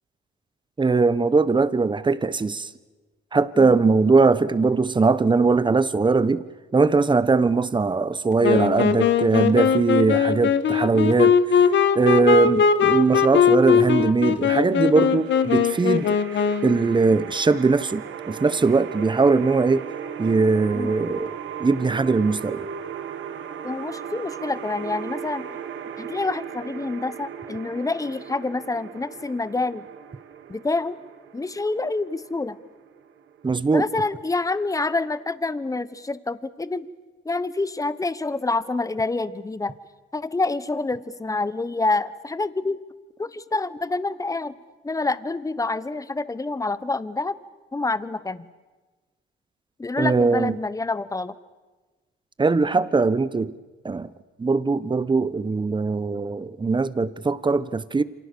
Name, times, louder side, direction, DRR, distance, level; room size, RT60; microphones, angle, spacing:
voice 1, 0.8-2.7 3.3-6.4 6.7-16.2 16.6-19.9 20.2-21.3 21.6-22.6 33.4-33.8 50.0-50.6 52.4-53.5 53.8-54.1 54.4-58.0, right 4 dB, 25° right, 1.1 m, -20 dB
Wind instrument woodwind instrument, 8.4-16.8, left 7 dB, 65° left, 1.5 m, -20 dB
sound 1, 15.0-33.9, right 8 dB, 75° right, 1.8 m, -37 dB
voice 2, 23.6-25.5 26.0-29.8 30.5-31.0 31.3-32.6 33.7-36.9 37.2-39.7 40.1-42.8 43.2-44.6 44.8-47.3 47.7-48.5 49.8-51.3, left 3 dB, 15° left, 1.2 m, -27 dB
28.5 x 26.0 x 7.0 m
cardioid pair, 90°, 20 cm